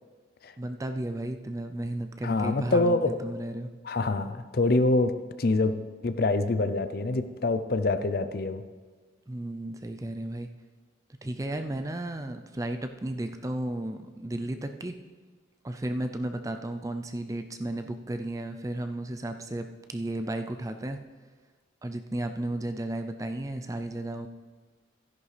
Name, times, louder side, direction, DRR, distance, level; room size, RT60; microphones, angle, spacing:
voice 1, 0.6-3.7 9.3-10.5 11.2-15.0 15.6-21.0 21.8-24.3, right 1 dB, 15° right, 7 dB, 0.4 m, -34 dB
voice 2, 2.2-3.2 3.8-5.1 5.4-5.7 6.0-8.6, left 2 dB, 50° left, 11 dB, 0.5 m, -25 dB
13.5 x 10.5 x 3.3 m, 1.4 s
head